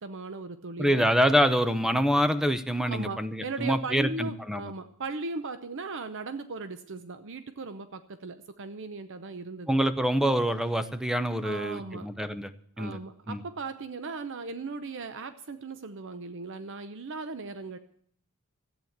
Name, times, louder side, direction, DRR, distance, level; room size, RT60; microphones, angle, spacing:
voice 1, 0.0-1.1 2.8-9.7 11.4-12.1 12.8-17.8, right 3 dB, 60° right, 11 dB, 0.7 m, -37 dB
voice 2, 0.8-4.7 9.7-12.5 12.8-13.0 13.3-13.4, equal, ahead, 11 dB, 0.8 m, -26 dB
14.0 x 8.9 x 7.9 m, 0.64 s
head